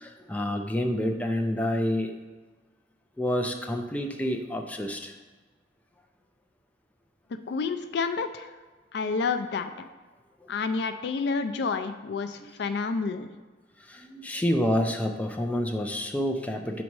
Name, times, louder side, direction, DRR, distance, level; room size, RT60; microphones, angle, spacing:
voice 1, 0.0-2.1 3.2-5.1 13.9-16.8, left 1 dB, 10° left, 3 dB, 0.5 m, -28 dB
voice 2, 7.5-8.5 8.9-9.9 10.5-13.3, left 4 dB, 65° left, 9 dB, 0.4 m, -29 dB
6.0 x 4.2 x 4.6 m, 1.3 s
head